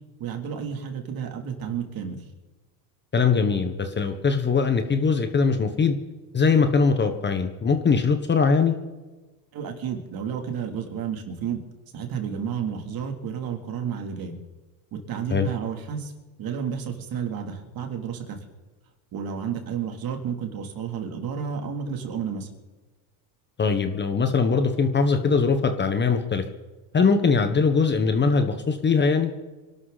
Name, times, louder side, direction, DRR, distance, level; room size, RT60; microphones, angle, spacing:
voice 1, 0.2-2.2 9.5-11.6 11.9-14.3 14.9-16.1 16.4-18.4 19.1-22.5, right 7 dB, 45° right, 4 dB, 3.3 m, -31 dB
voice 2, 3.1-5.9 6.3-8.8 15.3-15.5 23.6-26.4 26.9-29.3, left 5 dB, 20° left, 7 dB, 1.4 m, -21 dB
26.5 x 12.5 x 4.2 m, 1.2 s
supercardioid pair, 125°, 50 cm